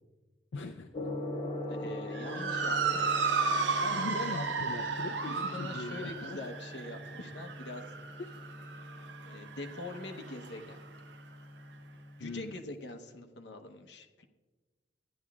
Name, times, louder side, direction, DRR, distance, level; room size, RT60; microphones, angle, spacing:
voice 1, 0.5-1.1 1.4-1.5 3.8-6.4 8.2-8.4 12.2-12.6, left 2 dB, 85° left, 4 dB, 0.5 m, -41 dB
Gong, 0.9-12.9, left 1 dB, 30° left, 0.6 m, -43 dB
voice 2, 1.7-3.0 5.3-7.8 9.2-10.8 12.2-14.3, left 2 dB, 70° left, 4 dB, 0.9 m, -44 dB
Motor vehicle (road) / Siren, 2.1-10.7, right 4 dB, 70° right, 0.8 m, -34 dB
14.5 x 10.5 x 2.4 m, 1.3 s
head